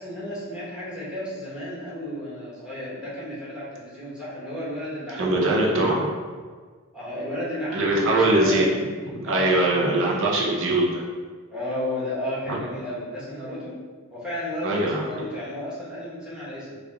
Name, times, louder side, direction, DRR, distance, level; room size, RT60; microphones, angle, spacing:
voice 1, 0.0-5.8 6.9-8.8 9.2-9.7 11.5-13.7 14.1-16.8, left 1 dB, 5° right, -9 dB, 0.9 m, -33 dB
voice 2, 5.2-6.1 7.7-11.0 12.5-12.6 14.6-15.1, right 1 dB, 60° right, -3 dB, 0.7 m, -22 dB
3.3 x 2.4 x 3.5 m, 1.5 s
head